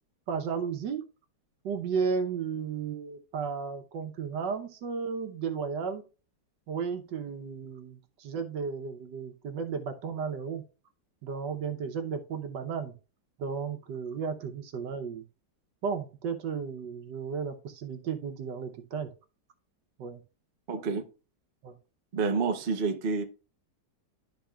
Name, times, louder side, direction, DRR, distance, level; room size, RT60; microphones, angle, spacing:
voice 1, 0.3-1.0 1.6-6.0 6.7-10.6 11.2-12.9 13.4-15.2 15.8-19.1 20.0-20.2 21.6-21.7, right 6 dB, 75° right, 1.6 m, -34 dB
voice 2, 20.7-21.0 22.1-23.2, right 4 dB, 45° right, 0.7 m, -28 dB
11.5 x 4.6 x 2.3 m
omnidirectional pair, 1.9 m